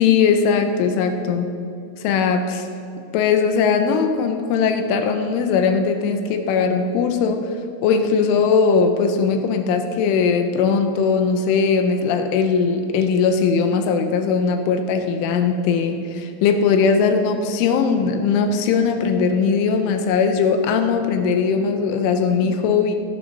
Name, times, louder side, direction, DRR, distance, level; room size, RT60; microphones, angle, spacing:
voice 1, 0.0-1.5 2.0-2.7 3.1-23.0, left 5 dB, 80° left, 6 dB, 3.4 m, -19 dB
16.0 x 12.5 x 6.6 m, 2.6 s
omnidirectional pair, 5.6 m